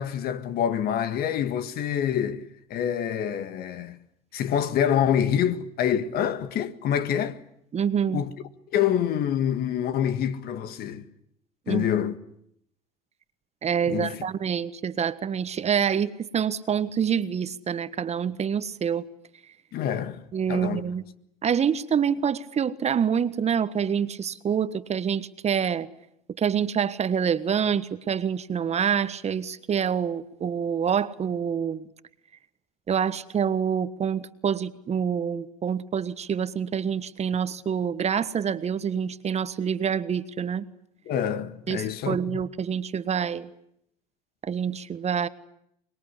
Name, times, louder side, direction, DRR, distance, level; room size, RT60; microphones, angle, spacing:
voice 1, 0.0-4.0 4.3-7.4 8.1-8.3 8.7-11.1 11.7-12.2 13.9-14.2 19.7-20.2 20.5-20.8 41.0-42.4, left 9 dB, 55° left, 1.8 m, -26 dB
voice 2, 7.7-8.2 11.7-11.8 13.6-19.1 20.3-21.0 21.4-25.9 26.4-31.9 32.9-40.6 41.7-43.5 44.4-45.3, right 7 dB, 35° right, 1.4 m, -26 dB
24.5 x 21.5 x 9.9 m
hypercardioid pair, 75°, 19 cm